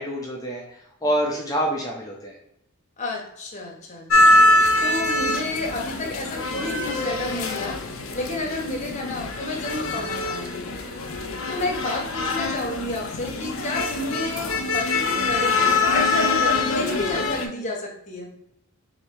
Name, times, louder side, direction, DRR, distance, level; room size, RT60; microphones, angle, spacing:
voice 1, 0.0-2.4, equal, 15° left, -1 dB, 0.5 m, -27 dB
voice 2, 3.0-7.8 8.1-10.7 11.5-18.3, left 2 dB, 30° left, 0 dB, 0.9 m, -31 dB
sound 1, 4.1-17.5, left 2 dB, 65° left, 0.6 m, -23 dB
3.1 x 2.7 x 4.5 m, 0.77 s
head